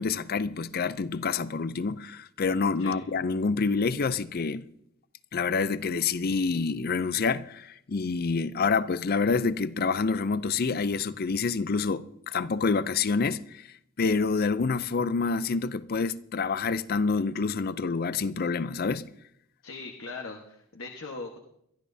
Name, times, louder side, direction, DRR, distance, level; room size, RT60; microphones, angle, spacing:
voice 1, 0.0-4.7 5.3-13.7 14.0-19.1, left 4 dB, 45° left, 0.5 m, -27 dB
voice 2, 19.6-21.4, left 3 dB, 70° left, 1.3 m, -40 dB
22.5 x 13.5 x 2.7 m
head